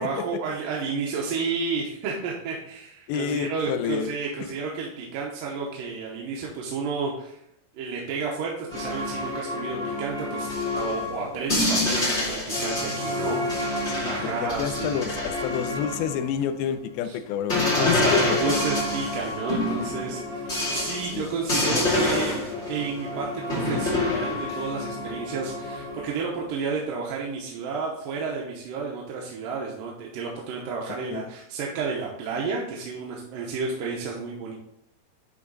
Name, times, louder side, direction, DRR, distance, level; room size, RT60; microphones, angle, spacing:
voice 1, 0.0-7.4 7.7-15.0 17.0-17.2 17.7-34.5, right 5 dB, 70° right, -2 dB, 2.4 m, -31 dB
voice 2, 3.1-4.2 13.9-18.5 21.1-21.3 31.1-31.3, left 8 dB, 85° left, 9 dB, 2.5 m, -29 dB
sound 1, 8.7-16.4 17.5-26.3, left 2 dB, 25° left, 1.9 m, -27 dB
11.0 x 3.8 x 3.9 m, 0.76 s
omnidirectional pair, 4.4 m